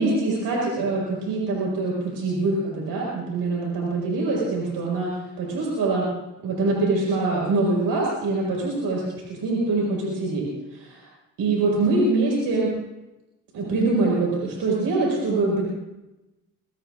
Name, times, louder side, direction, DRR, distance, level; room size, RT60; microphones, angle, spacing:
voice 1, 0.0-6.1 6.4-10.5 10.7-11.1 11.4-12.7 13.5-15.6, right 3 dB, 85° right, -3 dB, 5.5 m, -24 dB
23.5 x 23.0 x 2.5 m, 0.99 s
cardioid pair, 75°, 34 cm